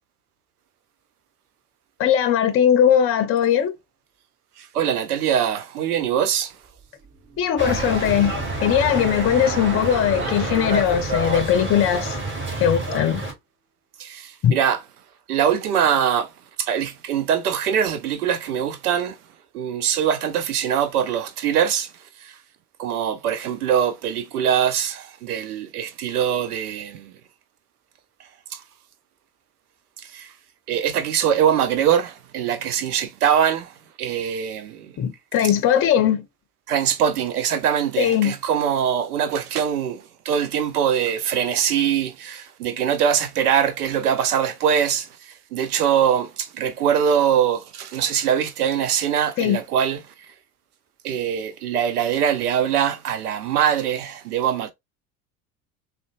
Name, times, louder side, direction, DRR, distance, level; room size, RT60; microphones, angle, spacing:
voice 1, 2.0-3.8 7.4-8.3 8.6-12.2 12.6-13.2 14.4-14.6 35.0-36.2 38.0-38.4 49.4-49.6, left 9 dB, 30° left, 0.6 m, -19 dB
voice 2, 4.6-6.5 14.0-14.8 15.3-16.3 16.6-19.2 19.5-21.9 22.2-22.4 22.8-27.1 28.5-28.6 30.0-30.3 30.7-34.9 36.7-50.0 51.0-54.7, right 8 dB, 80° right, 0.5 m, -22 dB
sound 1, 6.8-12.0, right 3 dB, 40° right, 1.9 m, -36 dB
sound 2, 7.6-13.3, right 2 dB, 25° right, 1.5 m, -28 dB
3.7 x 2.2 x 2.3 m
figure-of-eight pair, 60°, 45 cm